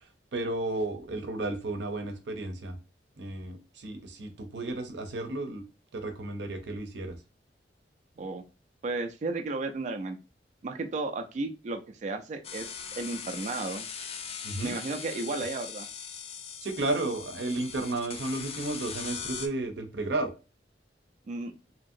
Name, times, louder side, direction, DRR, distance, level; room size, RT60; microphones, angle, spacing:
voice 1, 0.3-2.8 3.2-5.6 5.9-7.2 14.4-14.7 16.6-20.3, right 2 dB, 85° right, 6 dB, 0.7 m, -33 dB
voice 2, 8.8-10.2 10.6-13.9 14.6-15.9 21.3-21.5, right 3 dB, 45° right, 6 dB, 0.3 m, -34 dB
sound 1, 12.4-19.5, left 6 dB, 35° left, 0.4 m, -40 dB
2.8 x 2.7 x 2.5 m, 0.30 s
head